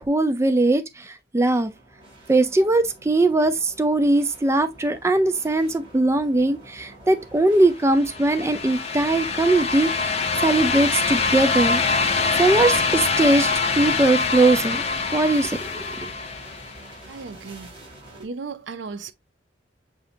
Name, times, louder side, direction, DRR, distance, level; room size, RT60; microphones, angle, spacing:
voice 1, 0.0-1.7 2.3-10.1 10.4-11.8 12.4-14.8 15.1-16.1, right 2 dB, 15° right, 0.3 m, -20 dB
sound 1, 1.5-18.2, right 1 dB, 30° right, 2.2 m, -46 dB
sound 2, 7.9-16.8, left 4 dB, 35° left, 0.6 m, -24 dB
voice 2, 17.1-17.7 18.1-19.1, right 4 dB, 75° right, 0.5 m, -35 dB
6.8 x 2.7 x 2.4 m
head